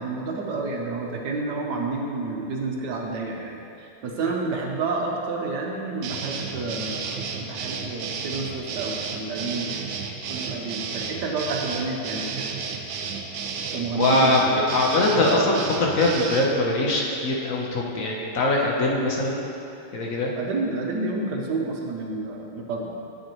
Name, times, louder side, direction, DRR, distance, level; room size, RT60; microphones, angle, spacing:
voice 1, 0.0-9.8 10.3-12.5 13.7-14.6 20.4-22.9, right 3 dB, 65° right, 0 dB, 1.3 m, -30 dB
sound 1, 6.0-16.5, right 5 dB, 85° right, 1.4 m, -32 dB
voice 2, 13.9-14.4 14.7-19.4 19.9-20.3, left 2 dB, 50° left, -2 dB, 1.2 m, -22 dB
9.4 x 7.4 x 3.1 m, 2.8 s
omnidirectional pair, 2.1 m